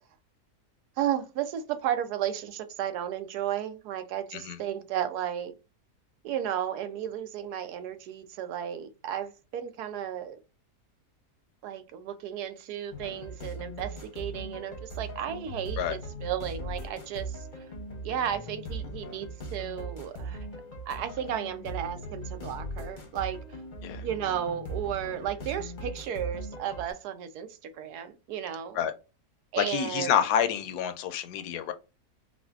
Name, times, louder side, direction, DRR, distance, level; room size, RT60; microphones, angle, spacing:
voice 1, 1.0-5.5 6.2-10.4 11.6-17.3 18.0-20.4 20.9-23.4 24.0-28.8 29.5-30.2, right 10 dB, 75° right, 1.1 m, -33 dB
sound 1, 12.9-26.9, right 1 dB, 40° left, 0.7 m, -39 dB
voice 2, 29.6-31.7, left 9 dB, 75° left, 1.1 m, -28 dB
4.8 x 2.2 x 2.3 m
omnidirectional pair, 1.8 m